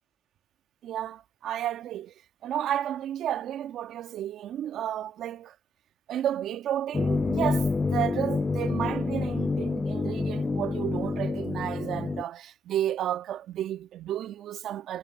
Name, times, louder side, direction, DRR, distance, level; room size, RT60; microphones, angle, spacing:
voice 1, 0.8-2.1 2.4-5.5 6.1-15.0, right 11 dB, 75° right, 1.4 m, -32 dB
sound 1, 6.9-12.2, left 4 dB, 40° left, 0.3 m, -28 dB
hypercardioid pair, 40°, 0 cm